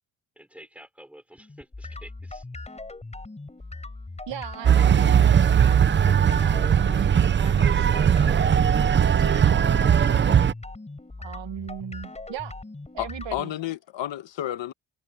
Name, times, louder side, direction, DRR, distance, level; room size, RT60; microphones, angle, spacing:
voice 1, 0.4-2.5, equal, 5° right, 4.3 m, -49 dB
sound 1, 1.4-13.4, left 2 dB, 15° left, 4.7 m, -40 dB
voice 2, 4.3-6.1 6.4-7.9 8.2-8.5 9.1-9.8 11.2-12.5 12.9-13.5, right 11 dB, 70° right, 1.3 m, -38 dB
sound 2, 4.6-10.5, right 8 dB, 30° right, 0.4 m, -19 dB
voice 3, 13.0-14.7, left 13 dB, 75° left, 1.1 m, -31 dB
wide cardioid pair, 170°, 44 cm